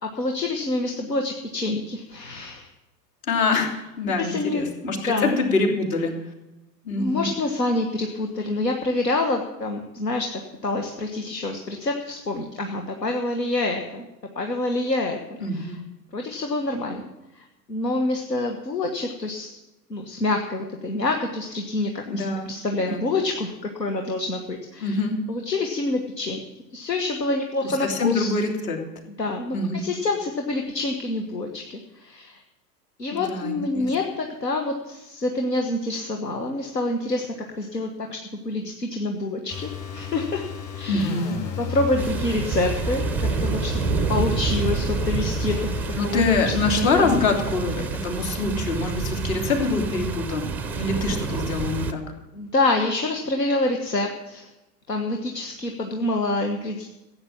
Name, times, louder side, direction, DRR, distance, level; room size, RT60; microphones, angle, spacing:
voice 1, 0.0-2.7 4.2-5.4 7.0-10.3 10.6-14.0 14.3-15.7 16.1-17.0 17.3-19.6 19.9-25.0 25.3-26.4 26.7-28.3 29.2-32.4 33.0-37.3 37.5-38.2 38.4-40.4 40.7-41.1 41.6-43.8 44.1-45.7 46.0-46.2 46.8-47.2 50.6-50.8 52.3-54.5 54.9-56.9, left 2 dB, 80° left, 4 dB, 1.5 m, -27 dB
voice 2, 3.2-6.1 6.8-7.3 15.4-15.8 22.1-22.5 22.8-23.0 24.8-25.2 27.6-28.8 29.5-29.8 33.1-33.9 40.9-41.4 46.0-50.5 50.8-52.0, left 3 dB, 55° left, 1 dB, 3.2 m, -25 dB
sound 1, 39.5-46.1, left 5 dB, 35° left, 3.0 m, -33 dB
sound 2, 42.0-51.9, right 5 dB, 5° right, 0.4 m, -28 dB
15.5 x 8.7 x 7.3 m, 0.97 s
figure-of-eight pair, 95°, 49 cm